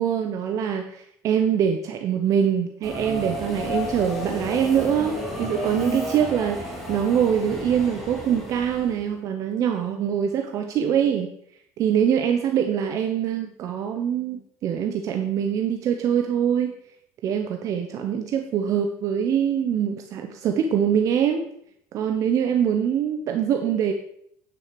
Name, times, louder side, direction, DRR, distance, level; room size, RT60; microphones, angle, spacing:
voice 1, 0.0-11.3 11.8-16.7 17.2-21.4 21.9-23.9, right 8 dB, 50° right, 5 dB, 0.8 m, -24 dB
Subway metro underground, 2.8-9.1, left 1 dB, ahead, 2.6 m, -32 dB
9.4 x 6.4 x 5.1 m, 0.71 s
cardioid pair, 140°, 7 cm